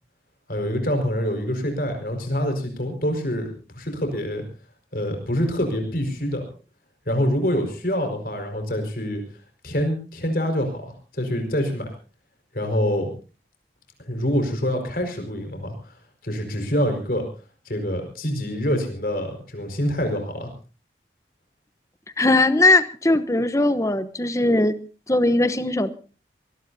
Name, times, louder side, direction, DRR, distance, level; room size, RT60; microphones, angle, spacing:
voice 1, 0.5-3.5 3.7-4.4 4.9-6.4 7.1-9.2 9.6-11.9 12.5-13.1 14.0-16.0 16.2-17.3 17.6-20.5, equal, 55° left, 5 dB, 4.8 m, -25 dB
voice 2, 22.2-24.8 25.1-25.9, left 2 dB, 20° left, 14 dB, 0.9 m, -19 dB
24.0 x 19.5 x 2.7 m, 0.35 s
head